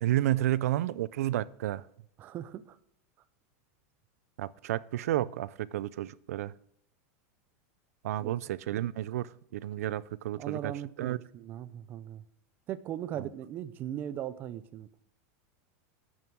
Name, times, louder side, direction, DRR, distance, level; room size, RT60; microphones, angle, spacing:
voice 1, 0.0-1.8 4.4-6.5 8.0-10.7 11.0-11.2 13.2-13.3, right 14 dB, 90° right, 0.4 m, -31 dB
voice 2, 2.2-2.8 8.2-8.3 10.4-12.2 12.7-14.9, right 11 dB, 25° right, 0.4 m, -39 dB
8.9 x 7.2 x 7.1 m
supercardioid pair, 175°, 8 cm